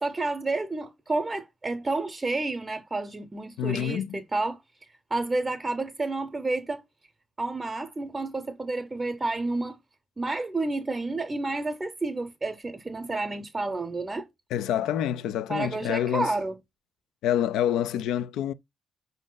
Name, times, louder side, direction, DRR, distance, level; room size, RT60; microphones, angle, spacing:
voice 1, 0.0-4.6 5.1-6.8 7.4-9.8 10.2-14.3 15.5-16.6, right 2 dB, 25° right, 0.7 m, -30 dB
voice 2, 3.6-4.2 14.5-16.3 17.2-18.5, left 10 dB, 90° left, 0.4 m, -27 dB
5.2 x 2.6 x 3.8 m
cardioid pair, 90°, 0 cm